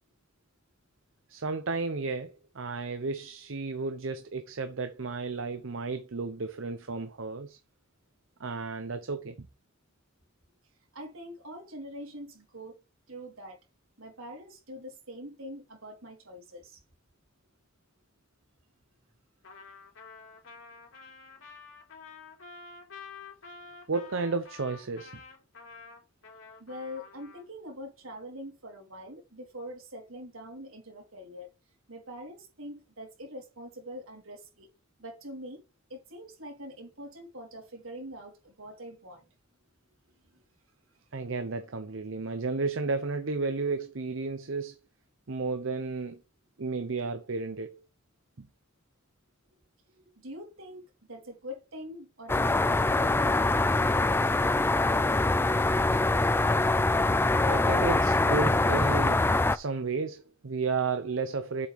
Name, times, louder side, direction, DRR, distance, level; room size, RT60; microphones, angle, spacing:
voice 1, 1.3-7.6 8.4-9.3 23.9-25.2 41.1-44.7 45.3-46.2 46.6-47.8 48.4-48.5 57.4-59.2 59.5-61.7, right 4 dB, 70° right, 0.8 m, -33 dB
voice 2, 10.9-12.8 13.1-13.6 14.0-16.8 26.6-31.5 31.9-34.7 35.0-35.6 35.9-39.3 40.3-40.4 40.9-41.0 49.9-52.9, equal, 85° right, 3.7 m, -44 dB
Trumpet, 19.4-27.4, left 4 dB, 70° left, 3.3 m, -49 dB
sound 1, 52.3-59.6, left 2 dB, 10° left, 0.3 m, -24 dB
8.0 x 6.0 x 3.5 m
head